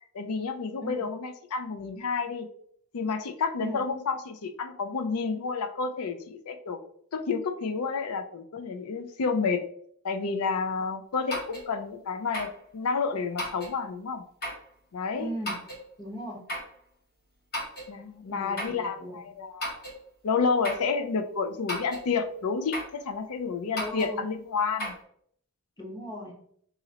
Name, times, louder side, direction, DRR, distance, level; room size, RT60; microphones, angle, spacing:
voice 1, 0.1-2.5 2.9-6.8 7.1-9.6 10.0-14.2 14.9-15.3 17.9-19.8 20.2-24.9, left 5 dB, 75° left, 8 dB, 0.5 m, -30 dB
sound 1, 11.3-11.7 12.3-12.6 13.4-13.8 14.4-14.7 15.4-15.8 16.5-16.7 17.5-17.9 18.6-18.8 19.6-20.0 20.6-20.9 21.7-22.1 22.7-23.0 23.8-24.1 24.8-24.9, equal, 45° left, 1.4 m, -34 dB
voice 2, 15.2-15.6 16.0-16.4 18.3-19.2 23.8-24.2 25.8-26.3, right 1 dB, 20° left, 0 dB, 1.0 m, -38 dB
4.1 x 3.8 x 2.8 m, 0.65 s
head